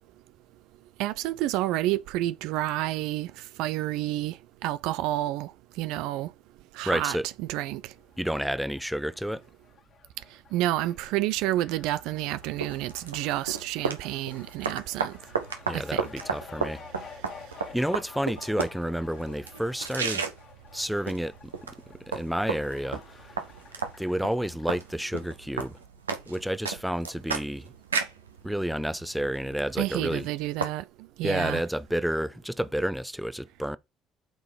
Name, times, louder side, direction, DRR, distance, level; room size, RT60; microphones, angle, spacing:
voice 1, 1.0-5.5 5.8-6.3 6.7-7.9 10.5-15.2 15.7-16.0 29.8-30.8 31.2-31.6, right 15 dB, 65° right, 0.3 m, -29 dB
voice 2, 6.8-7.3 8.2-9.4 15.6-17.2 17.7-20.2 20.7-21.5 22.1-23.4 24.0-25.8 26.3-27.7 28.4-30.3 31.2-33.8, equal, ahead, 0.6 m, -30 dB
Fowl, 7.8-25.2, left 6 dB, 50° left, 1.9 m, -51 dB
sound 1, 12.2-30.7, right 5 dB, 85° right, 0.8 m, -35 dB
8.3 x 3.8 x 4.6 m
figure-of-eight pair, 50°, 0 cm